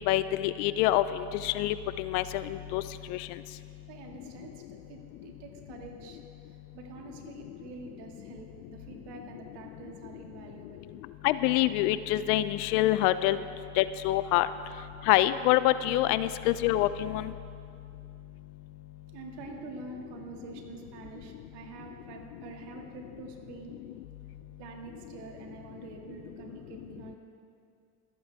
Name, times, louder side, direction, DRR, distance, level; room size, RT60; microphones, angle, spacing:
voice 1, 0.1-2.8 3.1-3.2 11.2-13.4 13.8-14.5 15.1-17.3, left 14 dB, 70° left, 14 dB, 0.6 m, -26 dB
voice 2, 3.9-6.2 6.7-10.9 19.1-23.8 24.6-27.2, right 4 dB, 60° right, 1 dB, 2.3 m, -46 dB
25.0 x 8.4 x 3.6 m, 2.4 s
hypercardioid pair, 80°, 47 cm